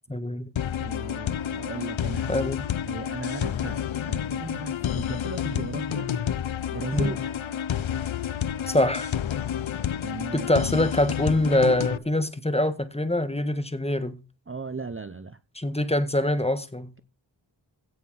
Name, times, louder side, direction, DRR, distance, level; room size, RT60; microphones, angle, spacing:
voice 1, 0.1-0.5 2.3-2.6 6.9-7.2 8.7-9.1 10.3-14.2 15.5-16.9, left 1 dB, 15° left, 1.7 m, -24 dB
sound 1, 0.6-12.0, left 9 dB, 85° left, 0.7 m, -29 dB
voice 2, 0.8-2.5 2.9-6.1 6.7-7.3 10.0-10.5 14.5-15.4, right 4 dB, 30° right, 0.7 m, -37 dB
16.5 x 5.8 x 5.7 m
wide cardioid pair, 60°, 46 cm